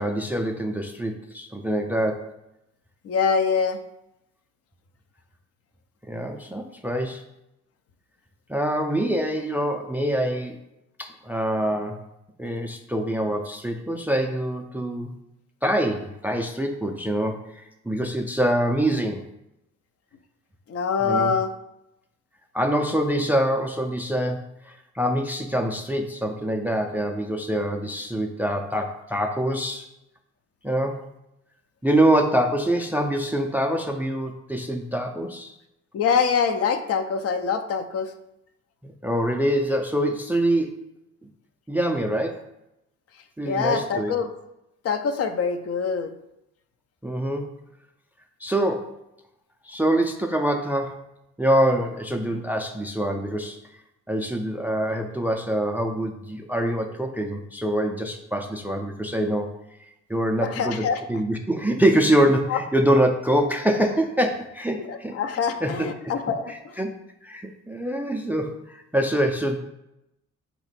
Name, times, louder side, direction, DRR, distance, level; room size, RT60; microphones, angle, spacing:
voice 1, 0.0-2.3 6.1-7.2 8.5-10.6 11.0-12.0 12.4-15.2 15.6-19.3 21.0-21.3 22.5-29.9 30.6-31.0 31.8-35.5 38.8-40.8 41.7-42.5 43.4-44.1 47.0-47.5 48.4-48.9 49.6-51.1 51.4-53.6 54.1-59.6 60.1-65.2 65.6-65.9 66.5-66.9 67.2-69.6, right 1 dB, 5° right, 4 dB, 0.3 m, -25 dB
voice 2, 3.0-3.8 20.7-21.5 35.9-38.1 43.4-44.3 44.8-46.1 60.4-61.0 62.5-62.6 64.8-66.7, left 6 dB, 55° left, 8 dB, 0.5 m, -24 dB
4.3 x 2.9 x 4.1 m, 0.86 s
cardioid pair, 90°, 30 cm